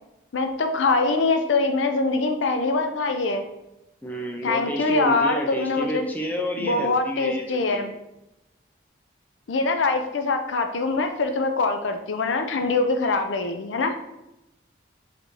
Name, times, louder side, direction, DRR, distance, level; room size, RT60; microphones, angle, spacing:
voice 1, 0.3-3.4 4.4-6.1 6.6-7.9 9.5-13.9, left 3 dB, 85° left, 6 dB, 0.5 m, -23 dB
voice 2, 4.0-7.8, equal, 10° left, 1 dB, 0.5 m, -30 dB
4.3 x 2.6 x 4.7 m, 0.91 s
head